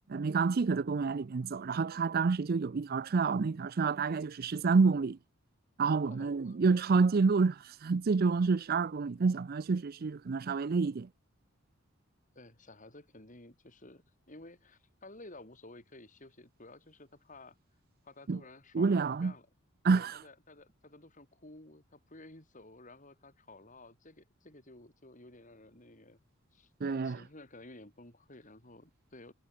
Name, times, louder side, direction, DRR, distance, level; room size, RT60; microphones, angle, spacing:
voice 1, 0.1-5.2 5.8-11.1 18.3-18.4 18.7-19.3 19.8-20.2 26.8-27.2, right 4 dB, 45° right, 0.4 m, -28 dB
voice 2, 6.0-6.6 12.3-17.6 18.0-19.5 19.9-26.2 26.5-29.3, left 2 dB, 35° left, 4.7 m, -53 dB
head